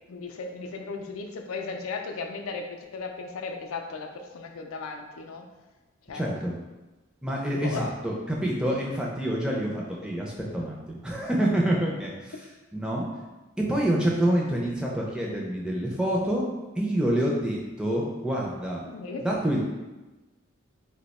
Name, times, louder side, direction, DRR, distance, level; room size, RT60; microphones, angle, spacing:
voice 1, 0.1-5.5 6.1-6.3 7.5-7.8 18.8-19.3, left 4 dB, 80° left, 4 dB, 0.4 m, -36 dB
voice 2, 6.1-6.5 7.2-12.3 12.7-13.1 13.7-16.5 16.8-18.8 19.2-19.6, right 1 dB, 5° right, -3 dB, 0.4 m, -27 dB
2.7 x 2.1 x 4.1 m, 1.1 s
head